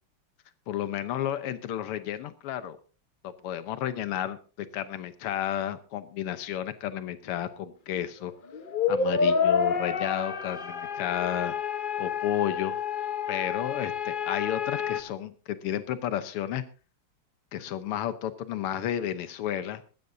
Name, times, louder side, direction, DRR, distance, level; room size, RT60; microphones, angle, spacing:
voice 1, 0.7-2.8 3.2-8.3 8.9-11.6 12.0-12.8 13.3-16.6 17.5-19.8, left 11 dB, 90° left, 12 dB, 1.8 m, -32 dB
sound 1, 8.5-15.0, left 6 dB, 55° left, 0.5 m, -28 dB
20.0 x 15.0 x 2.6 m, 0.34 s
omnidirectional pair, 2.4 m